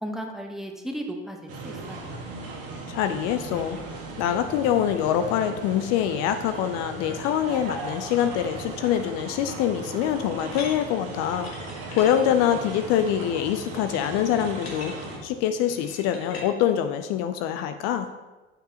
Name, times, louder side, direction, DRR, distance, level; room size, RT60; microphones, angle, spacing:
voice 1, 0.0-2.2, equal, ahead, 2 dB, 0.9 m, -35 dB
sound 1, 1.5-15.2, right 3 dB, 50° right, 1.5 m, -37 dB
voice 2, 2.9-11.5 11.9-14.9 15.2-18.1, left 10 dB, 60° left, 8 dB, 0.5 m, -25 dB
sound 2, 10.5-16.5, left 4 dB, 85° left, 1.2 m, -42 dB
6.7 x 5.9 x 2.8 m, 1.2 s
hypercardioid pair, 75°, 30 cm